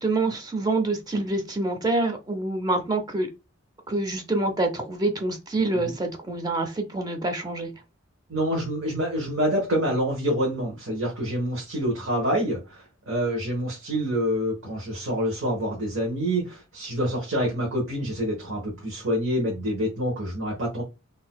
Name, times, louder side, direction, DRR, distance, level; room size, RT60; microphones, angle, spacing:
voice 1, 0.0-3.3 3.9-7.7, right 2 dB, 20° right, 0.5 m, -26 dB
voice 2, 8.3-20.8, equal, 65° right, 1.0 m, -27 dB
3.9 x 2.6 x 2.2 m
head